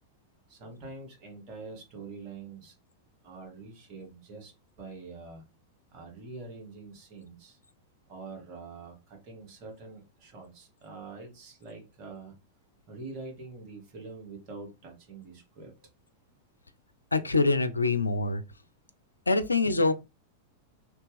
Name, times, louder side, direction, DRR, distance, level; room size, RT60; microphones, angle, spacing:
voice 1, 0.5-2.7 3.2-5.4 5.9-7.6 8.1-12.3 12.9-15.7, right 3 dB, 40° right, 1.7 m, -45 dB
voice 2, 17.1-18.4 19.3-19.9, left 3 dB, 80° left, 0.4 m, -25 dB
3.1 x 2.9 x 3.4 m
figure-of-eight pair, 90°, 0 cm